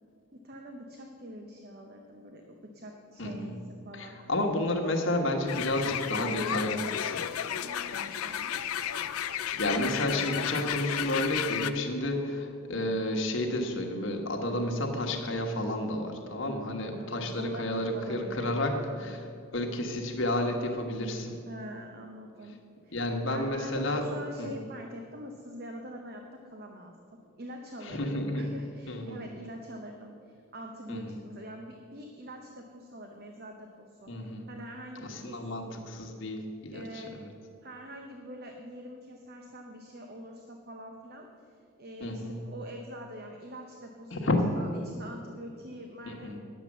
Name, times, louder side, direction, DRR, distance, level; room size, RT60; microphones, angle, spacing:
voice 1, 0.3-3.5 3.8-4.3 7.6-8.6 16.4-19.2 21.5-22.6 22.8-23.0 23.3-35.4 36.7-37.2 37.6-44.2 44.6-46.4, equal, 45° right, 3 dB, 0.8 m, -45 dB
voice 2, 3.2-3.5 3.9-7.3 8.2-8.4 9.6-19.2 19.5-21.4 22.9-24.1 24.4-24.5 27.8-28.5 28.9-29.2 30.9-31.2 34.1-34.5 35.0-37.3 42.0-42.5 44.1-44.5 46.1-46.4, left 1 dB, 60° left, 3 dB, 1.3 m, -31 dB
sound 1, 5.5-11.7, left 9 dB, 85° left, 0.5 m, -33 dB
10.0 x 7.4 x 7.2 m, 2.4 s
head